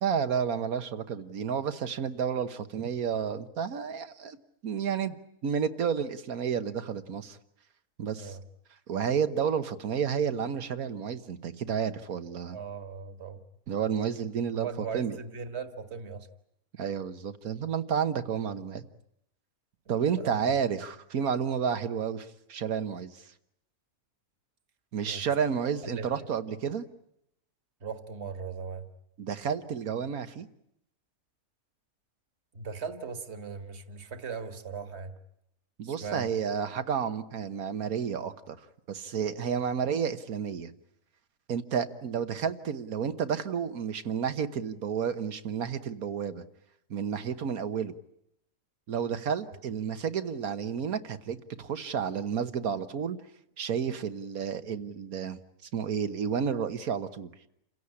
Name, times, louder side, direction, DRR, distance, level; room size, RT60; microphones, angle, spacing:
voice 1, 0.0-4.4 4.6-5.2 5.4-7.4 8.0-8.4 8.9-12.6 13.7-15.2 16.8-18.8 19.9-23.2 24.9-26.9 29.2-30.5 35.8-38.6 38.9-40.7 41.5-46.4 46.9-47.9 48.9-53.2 53.6-55.4 55.7-57.3, right 7 dB, 85° right, 11 dB, 1.7 m, -31 dB
voice 2, 12.5-13.4 14.6-16.3 19.9-20.4 25.0-25.3 25.8-26.1 27.8-28.9 32.5-35.1 35.8-36.3, right 5 dB, 50° right, 8 dB, 1.9 m, -39 dB
29.0 x 16.5 x 9.9 m, 0.79 s
omnidirectional pair, 1.5 m